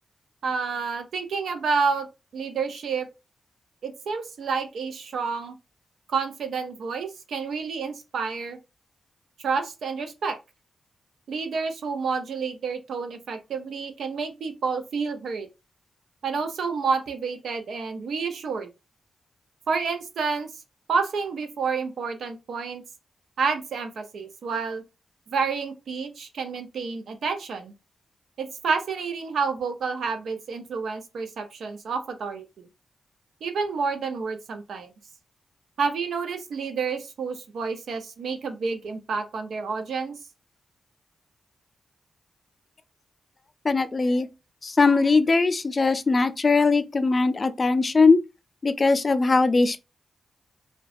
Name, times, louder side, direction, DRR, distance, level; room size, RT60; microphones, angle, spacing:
voice 1, 0.4-2.1 2.3-3.1 3.8-5.5 6.1-8.6 9.4-10.4 11.3-15.5 16.2-18.7 19.7-20.5 20.9-22.8 23.4-24.8 25.3-27.7 28.4-32.7 33.4-34.9 35.8-40.2, right 5 dB, 80° right, 0.4 m, -29 dB
voice 2, 43.7-44.3 44.6-48.2 48.6-49.8, left 3 dB, 45° left, 0.3 m, -20 dB
2.5 x 2.2 x 2.4 m
supercardioid pair, 45°, 0 cm